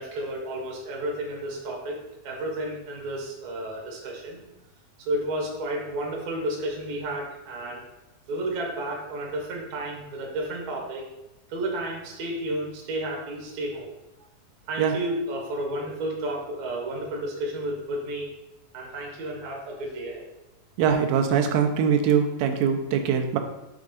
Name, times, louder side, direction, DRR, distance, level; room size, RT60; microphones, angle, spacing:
voice 1, 0.0-4.4 5.0-7.8 8.3-11.1 11.5-13.9 14.7-18.3 18.7-20.3, right 1 dB, 60° right, -1 dB, 0.9 m, -32 dB
voice 2, 20.8-23.4, right 7 dB, 90° right, 5 dB, 2.4 m, -22 dB
6.4 x 3.6 x 5.1 m, 0.98 s
omnidirectional pair, 4.1 m